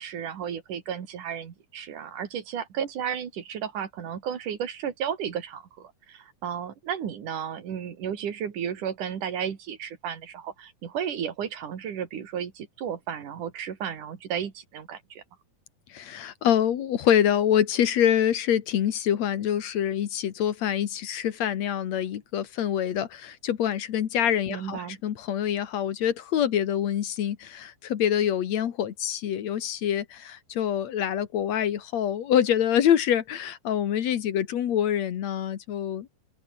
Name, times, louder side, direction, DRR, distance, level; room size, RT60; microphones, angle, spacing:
voice 1, 0.0-15.2 24.5-25.0, right 8 dB, 85° right, 3.9 m, -33 dB
voice 2, 15.9-36.1, left 10 dB, 65° left, 2.6 m, -25 dB
open air
omnidirectional pair, 3.5 m